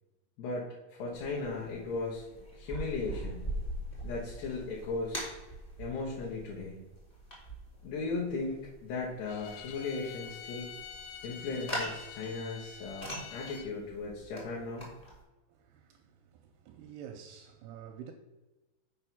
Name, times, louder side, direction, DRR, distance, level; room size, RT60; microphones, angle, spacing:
voice 1, 0.4-2.2 2.6-3.5 4.0-5.2 5.8-6.8 7.8-10.7 11.2-14.9, left 3 dB, 70° left, 3.2 m, -37 dB
sound 1, 1.1-15.2, right 1 dB, 25° left, 0.9 m, -42 dB
Bowed string instrument, 9.3-13.7, left 9 dB, 90° left, 2.9 m, -47 dB
voice 2, 15.5-18.1, right 8 dB, 85° right, 2.4 m, -49 dB
7.6 x 4.7 x 5.8 m
omnidirectional pair, 5.1 m